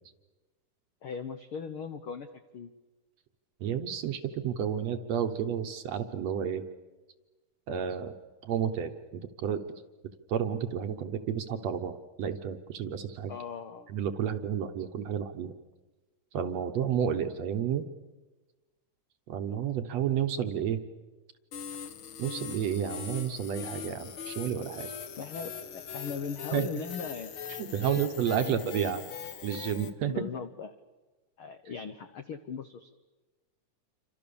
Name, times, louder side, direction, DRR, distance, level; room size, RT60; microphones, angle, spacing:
voice 1, 1.0-2.3 2.5-2.7 13.3-13.9 25.2-27.3 27.8-28.1 28.4-28.7 30.0-30.7 31.4-32.9, left 6 dB, 80° left, 9 dB, 1.2 m, -39 dB
voice 2, 3.6-6.6 7.7-8.2 8.4-9.6 10.3-13.3 13.9-15.5 16.3-17.9 19.3-20.8 22.2-24.9 26.5-26.7 27.6-29.0 29.4-30.2, right 8 dB, 65° right, 8 dB, 2.0 m, -31 dB
sound 1, 21.5-29.9, left 7 dB, 50° left, 1.7 m, -41 dB
28.5 x 25.5 x 7.0 m, 1.2 s
omnidirectional pair, 3.8 m